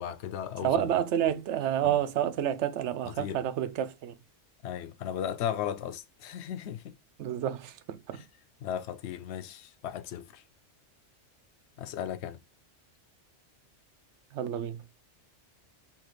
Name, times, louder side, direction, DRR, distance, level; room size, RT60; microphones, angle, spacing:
voice 1, 0.0-1.0 1.8-2.0 3.1-3.4 4.6-7.0 8.1-8.2 8.6-10.4 11.8-12.4, left 9 dB, 70° left, 0.8 m, -36 dB
voice 2, 0.6-4.2 7.2-8.2 14.3-14.8, right 10 dB, 75° right, 0.9 m, -29 dB
5.6 x 2.4 x 3.0 m
omnidirectional pair, 1.2 m